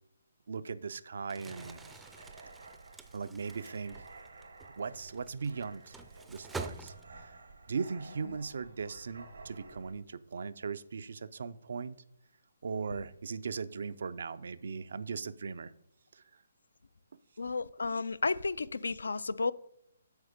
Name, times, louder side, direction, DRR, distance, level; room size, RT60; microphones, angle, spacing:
voice 1, 0.5-1.8 3.1-4.0 4.8-5.9 6.3-7.3 7.7-11.9 12.6-15.7 16.1-16.2, right 5 dB, 65° right, 0.5 m, -38 dB
Crumpling crinkling, 1.2-7.4, right 3 dB, 5° right, 0.4 m, -47 dB
sound 1, 1.5-9.9, right 3 dB, 85° right, 1.5 m, -52 dB
voice 2, 17.4-19.5, left 4 dB, 80° left, 0.3 m, -32 dB
8.1 x 4.8 x 5.1 m
hypercardioid pair, 145°, 0 cm